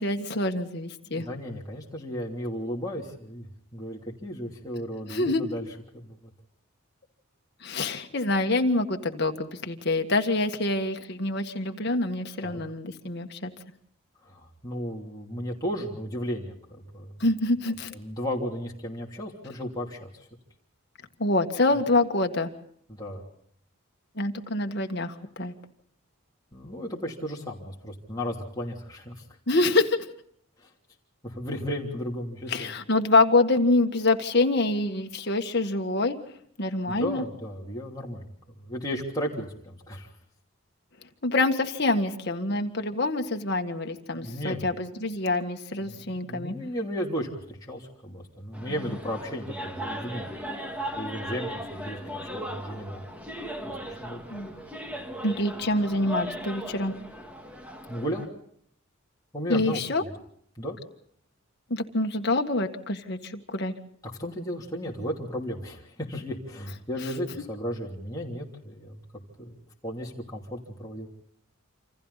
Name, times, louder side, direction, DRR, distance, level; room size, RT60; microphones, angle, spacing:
voice 1, 0.0-1.3 5.1-5.4 7.6-13.5 17.2-17.9 21.2-22.5 24.2-25.5 29.5-30.1 32.5-36.2 36.6-37.2 41.2-46.5 48.8-48.9 54.3-54.5 55.2-56.9 59.5-60.0 61.7-63.7, left 2 dB, 50° left, 5 dB, 1.7 m, -26 dB
voice 2, 1.1-5.7 5.9-6.3 12.4-12.6 14.3-17.2 17.9-20.3 22.9-23.2 26.5-29.2 30.6-30.7 31.2-32.7 36.9-40.1 44.1-44.7 45.8-50.3 50.9-52.0 52.3-53.0 53.6-54.2 57.9-58.3 59.3-60.1 60.6-60.8 64.0-69.0 69.4-71.1, equal, 15° left, -3 dB, 3.0 m, -34 dB
sound 1, 48.5-58.3, right 1 dB, 5° right, 1.9 m, -37 dB
28.0 x 26.5 x 4.1 m, 0.66 s
head